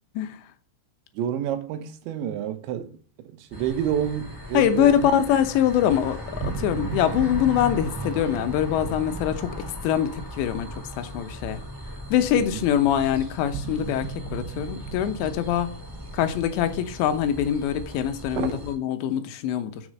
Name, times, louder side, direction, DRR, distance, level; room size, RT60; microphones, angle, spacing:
voice 1, 1.2-2.9 3.2-5.1 12.4-12.7 18.4-18.6, right 10 dB, 90° right, 3.4 m, -29 dB
sound 1, 3.5-18.7, equal, 5° right, 2.9 m, -37 dB
voice 2, 4.5-6.2 6.4-9.5 9.8-11.6 12.1-15.7 16.1-19.8, left 10 dB, 85° left, 3.2 m, -24 dB
sound 2, 6.4-11.5 11.8-11.9 13.5-17.0, right 7 dB, 70° right, 2.6 m, -38 dB
7.8 x 6.4 x 6.4 m
omnidirectional pair, 5.0 m